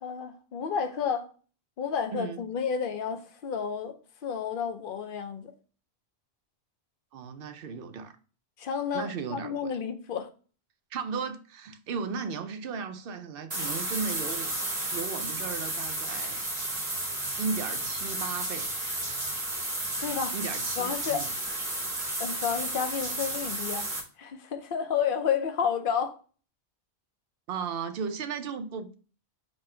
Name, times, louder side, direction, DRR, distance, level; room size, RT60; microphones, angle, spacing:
voice 1, 0.0-1.3 1.8-3.9 4.2-5.5 8.6-10.3 20.0-20.4 20.8-21.3 22.2-23.9 24.2-26.2, left 7 dB, 60° left, 0.7 m, -31 dB
voice 2, 7.1-8.2 8.9-9.7 10.9-14.5 14.9-16.4 17.4-18.7 20.3-21.3 27.5-28.9, right 5 dB, 65° right, 0.7 m, -35 dB
sound 1, 13.5-24.0, right 1 dB, 40° right, 1.2 m, -32 dB
4.2 x 2.2 x 4.2 m
omnidirectional pair, 1.1 m